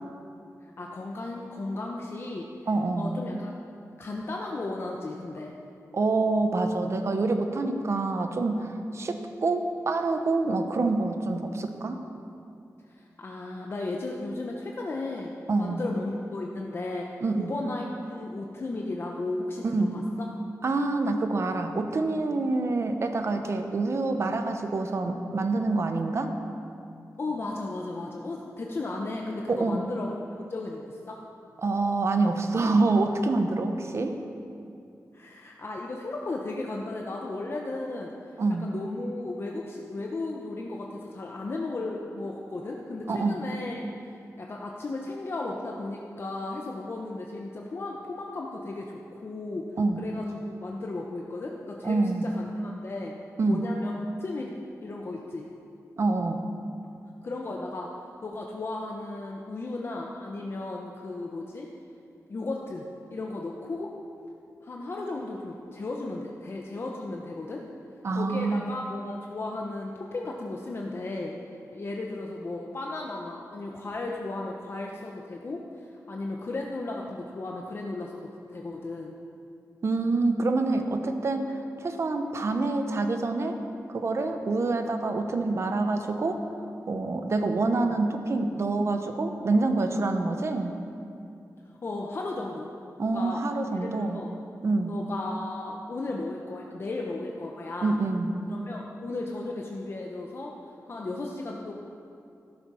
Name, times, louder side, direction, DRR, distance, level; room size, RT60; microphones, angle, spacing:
voice 1, 0.6-2.5 3.0-3.5 4.0-5.5 12.9-15.3 15.6-17.1 17.4-20.3 27.2-31.2 35.1-38.1 38.6-43.9 44.4-49.7 50.0-53.1 53.5-54.5 54.8-55.5 57.2-57.9 58.2-61.7 62.3-63.9 64.6-67.6 68.1-71.4 71.7-79.1 91.8-92.7 93.1-93.4 93.7-94.3 94.9-98.0 98.5-100.5 100.9-101.7, left 2 dB, 40° left, -1 dB, 1.0 m, -35 dB
voice 2, 2.7-3.2 5.9-12.0 15.5-15.8 17.2-17.5 19.6-20.0 20.6-26.3 29.5-29.8 31.6-34.2 38.4-38.7 43.1-43.4 49.8-50.0 51.8-52.3 53.4-53.6 56.0-56.4 68.0-68.6 79.8-83.6 83.9-86.4 86.9-90.7 93.0-94.2 94.6-94.9 97.8-98.3, right 3 dB, 50° right, 6 dB, 1.0 m, -26 dB
14.0 x 12.5 x 5.7 m, 2.6 s
wide cardioid pair, 175°, 6 cm